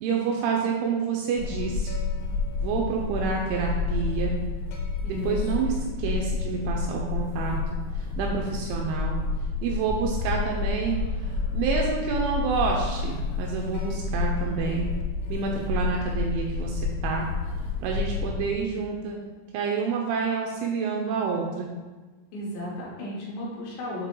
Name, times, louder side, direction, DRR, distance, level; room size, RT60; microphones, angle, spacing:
voice 1, 0.0-2.0 2.6-4.4 5.1-7.6 8.0-9.2 9.6-14.9 15.3-17.3 17.8-19.2 19.5-21.7, right 5 dB, 85° right, 0 dB, 2.7 m, -28 dB
sound 1, 1.4-18.7, left 4 dB, 90° left, 3.6 m, -29 dB
voice 2, 5.0-5.3 5.6-5.8 14.6-14.9 22.3-24.1, left 1 dB, 75° left, -4 dB, 3.0 m, -35 dB
8.2 x 3.3 x 3.7 m, 1.3 s
omnidirectional pair, 5.8 m